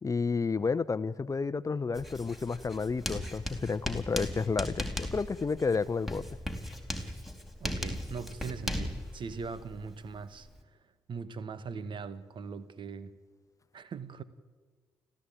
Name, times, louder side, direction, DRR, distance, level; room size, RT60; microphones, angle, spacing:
voice 1, 0.0-6.2, left 4 dB, 30° left, 0.9 m, -31 dB
Writing, 1.9-10.6, left 1 dB, ahead, 4.1 m, -38 dB
voice 2, 7.6-10.5 11.1-13.2 13.7-14.2, right 5 dB, 50° right, 1.6 m, -40 dB
29.5 x 14.5 x 8.9 m
hypercardioid pair, 40°, 10 cm